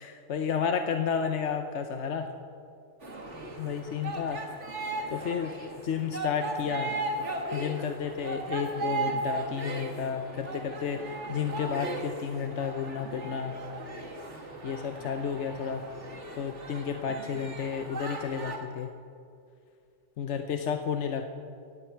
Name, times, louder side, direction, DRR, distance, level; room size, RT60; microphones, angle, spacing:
voice 1, 0.0-2.3 3.6-4.4 5.1-5.5 5.8-6.9 7.5-13.6 14.6-15.9 16.4-18.9 20.2-21.2, left 7 dB, 80° left, 6 dB, 1.1 m, -32 dB
sound 1, 3.0-18.6, right 2 dB, 80° right, 2.2 m, -37 dB
18.5 x 16.0 x 4.5 m, 2.4 s
omnidirectional pair, 1.2 m